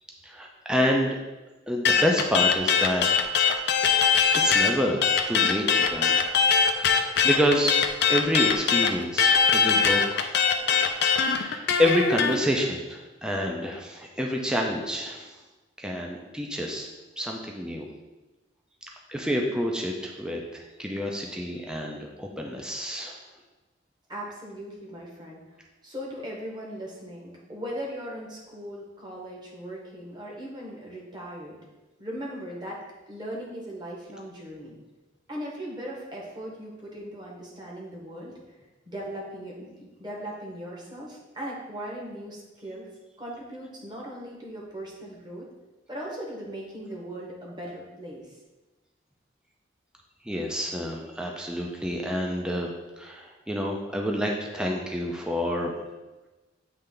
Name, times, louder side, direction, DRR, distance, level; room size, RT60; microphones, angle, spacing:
voice 1, 0.2-1.2 1.7-3.0 3.6-3.8 4.3-7.8 8.1-10.5 10.7-15.4 15.8-16.9 17.2-17.9 19.1-23.2 50.2-55.7, equal, 5° right, 0 dB, 0.5 m, -28 dB
sound 1, 1.8-4.7 5.0-12.3, left 6 dB, 60° left, 0.5 m, -21 dB
voice 2, 10.6-11.0 24.1-25.4 25.8-31.6 32.0-32.8 33.1-34.7 35.3-38.4 38.9-42.9 43.2-45.5 45.9-48.3, equal, 25° right, -3 dB, 1.3 m, -38 dB
8.1 x 3.3 x 3.8 m, 1.1 s
head